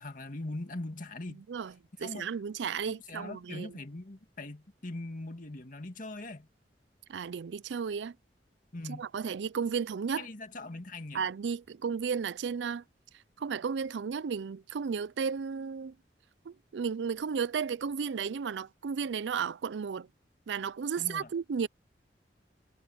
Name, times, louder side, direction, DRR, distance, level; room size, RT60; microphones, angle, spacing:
voice 1, 0.0-1.4 2.0-2.3 3.1-6.5 8.7-9.0 10.2-11.2 21.0-21.3, left 2 dB, 50° left, 2.1 m, -41 dB
voice 2, 2.0-3.8 7.1-8.1 8.9-10.3 11.1-12.8 13.4-15.9 16.5-20.1 20.5-21.7, right 6 dB, 80° right, 0.4 m, -33 dB
head